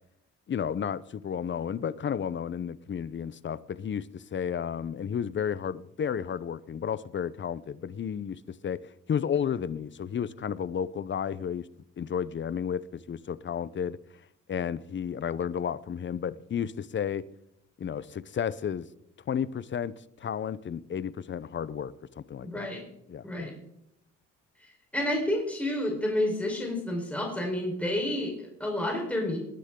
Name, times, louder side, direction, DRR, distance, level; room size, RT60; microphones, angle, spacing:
voice 1, 0.5-11.7 12.0-14.0 14.5-17.2 17.8-18.9 19.3-19.9 20.2-22.7 23.1-23.5, left 8 dB, 40° left, 0.7 m, -32 dB
voice 2, 22.4-22.8 23.2-23.5 24.6-29.4, left 1 dB, 5° left, 4.2 m, -30 dB
20.0 x 10.0 x 3.8 m
cardioid pair, 90°, 30 cm